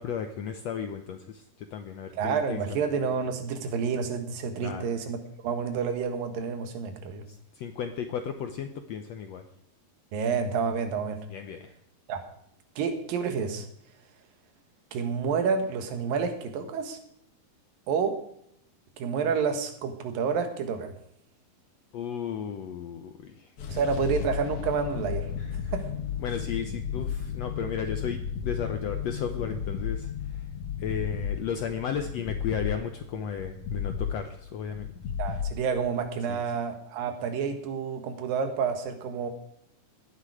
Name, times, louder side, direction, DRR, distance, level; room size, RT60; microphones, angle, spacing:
voice 1, 0.0-2.8 4.6-4.9 7.3-9.5 11.3-11.7 21.9-23.5 25.4-25.7 26.2-30.5 30.8-34.9 36.3-36.4, left 7 dB, 75° left, 7 dB, 1.6 m, -34 dB
voice 2, 2.1-5.2 5.4-7.2 10.1-11.2 12.1-12.2 12.8-13.7 14.9-17.0 17.9-18.2 19.0-20.9 23.7-25.3 25.7-25.8 35.2-39.3, right 6 dB, 80° right, 7 dB, 3.2 m, -29 dB
sound 1, 23.6-36.1, left 8 dB, 55° left, 1.7 m, -34 dB
16.0 x 11.0 x 4.9 m, 0.72 s
omnidirectional pair, 4.0 m